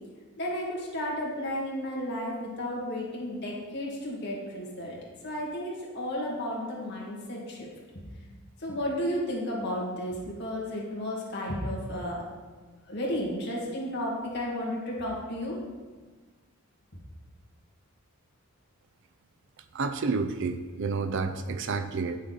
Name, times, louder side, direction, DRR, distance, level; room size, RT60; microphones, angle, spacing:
voice 1, 0.4-5.0 5.2-7.7 8.6-12.2 12.9-15.6, equal, 50° left, -3 dB, 1.9 m, -33 dB
voice 2, 19.7-22.2, right 4 dB, 55° right, 9 dB, 0.4 m, -30 dB
8.1 x 6.4 x 4.0 m, 1.4 s
head